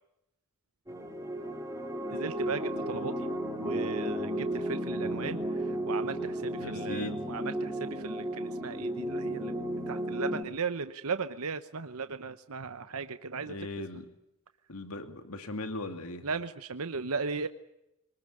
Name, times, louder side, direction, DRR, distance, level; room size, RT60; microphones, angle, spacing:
sound 1, 0.9-10.4, right 1 dB, 15° right, 3.6 m, -34 dB
voice 1, 2.1-3.3 3.6-5.4 5.7-9.5 9.9-13.5 16.2-17.5, right 4 dB, 75° right, 10 dB, 0.9 m, -36 dB
voice 2, 6.6-7.4 13.4-14.1 14.7-16.3, left 2 dB, 70° left, 7 dB, 2.5 m, -38 dB
24.0 x 20.5 x 9.7 m, 0.88 s
head